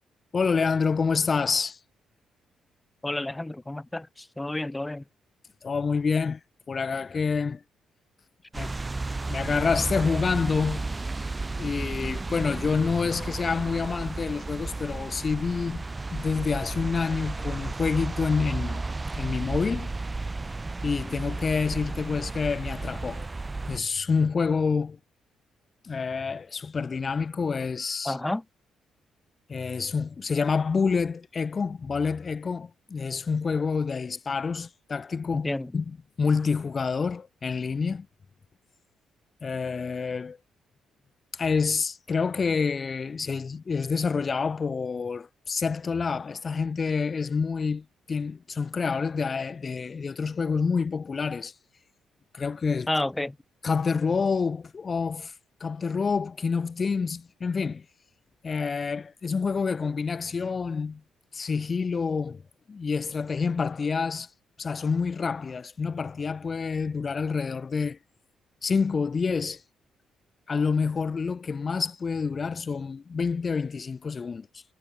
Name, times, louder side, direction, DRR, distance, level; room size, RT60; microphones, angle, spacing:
voice 1, 0.3-1.8 5.6-6.4 6.7-7.6 8.5-8.8 9.3-10.9 11.6-15.8 16.1-18.8 19.2-19.9 20.8-23.3 23.7-25.0 25.8-28.2 29.5-38.1 39.4-40.4 41.3-51.5 52.3-52.9 53.6-55.3 55.6-57.9 58.4-61.0 61.3-62.4 62.7-64.3 64.6-68.0 68.6-69.6 70.5-74.6, left 5 dB, 35° left, 0.8 m, -28 dB
voice 2, 3.0-5.0 28.0-28.4 35.4-35.7 52.9-53.4, left 1 dB, 10° left, 0.4 m, -30 dB
sound 1, 8.5-23.8, right 3 dB, 20° right, 1.6 m, -33 dB
cardioid pair, 90°, 0 cm